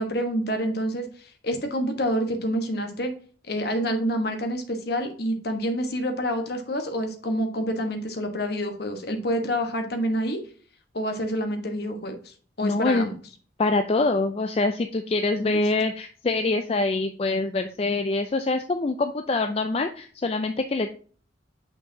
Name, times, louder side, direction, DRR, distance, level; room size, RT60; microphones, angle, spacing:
voice 1, 0.0-3.1 3.5-10.4 10.9-13.1 15.4-15.6, equal, 55° left, 5 dB, 1.3 m, -27 dB
voice 2, 12.6-13.1 13.6-20.9, left 3 dB, 30° left, 7 dB, 0.4 m, -25 dB
6.5 x 5.8 x 2.8 m, 0.43 s
head